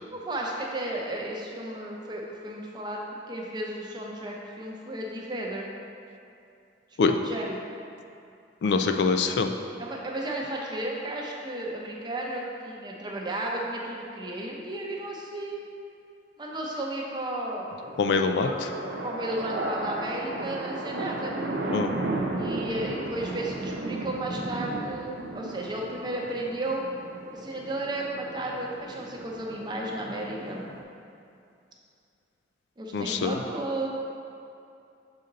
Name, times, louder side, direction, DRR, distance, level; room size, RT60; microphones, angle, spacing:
voice 1, 0.1-5.7 7.1-7.6 9.8-15.6 16.4-17.7 18.4-18.6 19.0-21.3 22.4-26.8 27.3-30.7 32.8-33.9, right 1 dB, 25° right, -2 dB, 0.6 m, -33 dB
voice 2, 8.6-9.5 18.0-18.5 21.7-21.9 32.9-33.4, left 4 dB, 65° left, 6 dB, 0.3 m, -24 dB
sound 1, 17.8-30.8, right 2 dB, 65° right, 0.6 m, -34 dB
6.4 x 3.9 x 3.9 m, 2.5 s
head